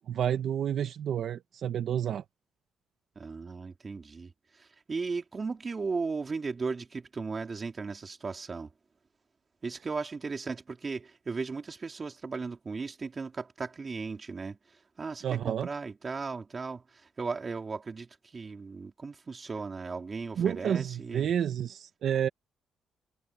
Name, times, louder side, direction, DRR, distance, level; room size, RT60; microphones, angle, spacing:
voice 1, 0.1-2.2 15.2-15.7 20.4-22.3, right 9 dB, 65° right, 1.0 m, -30 dB
voice 2, 3.1-4.3 4.6-8.7 9.6-14.6 15.0-16.8 17.2-21.3, right 4 dB, 35° right, 3.1 m, -36 dB
cardioid pair, 90°, 0 cm